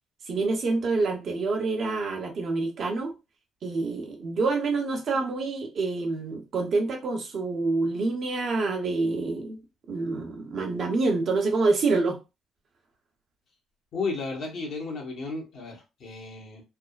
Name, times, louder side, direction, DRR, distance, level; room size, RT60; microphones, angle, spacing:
voice 1, 0.3-3.1 3.6-9.6 9.9-12.2, right 3 dB, 55° right, 0.9 m, -27 dB
voice 2, 13.9-16.6, left 4 dB, 65° left, 1.2 m, -33 dB
3.5 x 2.1 x 2.4 m
cardioid pair, 95°, 0 cm